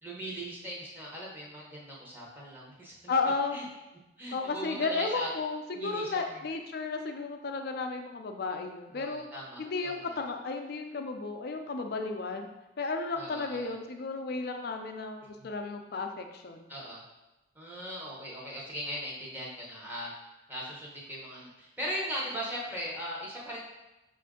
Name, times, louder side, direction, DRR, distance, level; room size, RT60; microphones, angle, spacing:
voice 1, 0.0-3.1 3.5-3.6 4.2-5.3 5.7-6.4 8.9-10.2 13.2-13.7 15.4-15.5 16.7-17.0 17.5-20.1 20.5-23.7, equal, 10° right, -4 dB, 0.8 m, -39 dB
voice 2, 3.1-3.6 4.3-9.2 9.6-12.5 12.8-16.7, left 3 dB, 55° left, 5 dB, 0.4 m, -33 dB
5.5 x 2.5 x 3.6 m, 1.0 s
head